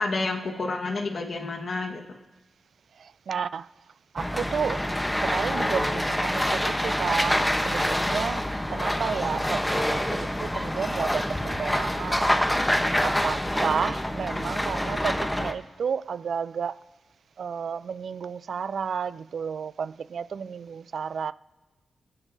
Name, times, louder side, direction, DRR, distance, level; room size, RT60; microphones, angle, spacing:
voice 1, 0.0-2.2, left 3 dB, 55° left, 1.4 m, -29 dB
voice 2, 3.0-3.7 4.1-4.9 5.2-12.4 13.0-16.8 17.4-21.3, right 6 dB, 70° right, 0.4 m, -32 dB
sound 1, 4.2-15.5, left 1 dB, 10° left, 0.8 m, -26 dB
27.0 x 9.8 x 2.6 m
wide cardioid pair, 95°, 0 cm